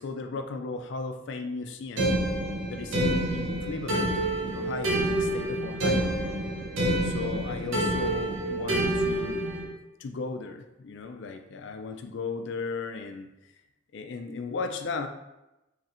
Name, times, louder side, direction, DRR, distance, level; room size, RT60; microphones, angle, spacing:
voice 1, 0.0-2.2 2.7-6.2 7.0-9.5 10.0-13.5 13.9-15.1, left 4 dB, 65° left, 6 dB, 0.4 m, -36 dB
sound 1, 2.0-9.6, right 1 dB, 85° right, 0.8 m, -28 dB
4.2 x 3.1 x 2.5 m, 0.95 s
head